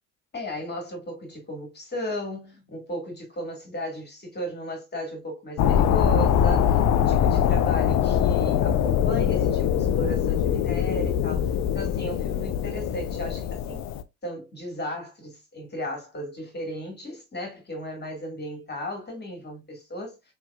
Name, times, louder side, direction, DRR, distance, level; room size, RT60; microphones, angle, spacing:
voice 1, 0.3-13.8 14.2-20.2, equal, 25° left, 2.0 m, -35 dB
sound 1, 5.6-14.0, left 9 dB, 50° left, 0.6 m, -23 dB
5.9 x 3.2 x 2.4 m
hypercardioid pair, 60°, 37 cm